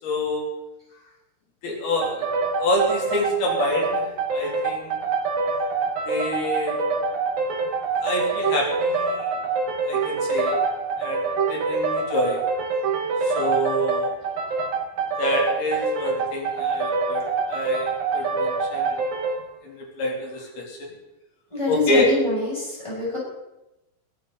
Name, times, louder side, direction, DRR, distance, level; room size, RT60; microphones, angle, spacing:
voice 1, 0.0-0.5 1.6-2.3 2.5-5.0 6.1-6.8 8.0-9.3 9.9-10.6 11.0-11.2 11.5-12.4 13.2-14.1 15.2-19.0 19.6-20.9 21.7-22.1, equal, 60° left, -1 dB, 5.1 m, -27 dB
sound 1, 2.0-19.4, right 4 dB, 60° right, 2.2 m, -25 dB
voice 2, 21.5-23.2, left 3 dB, 5° left, -6 dB, 7.7 m, -24 dB
22.0 x 13.5 x 4.1 m, 0.95 s
omnidirectional pair, 5.0 m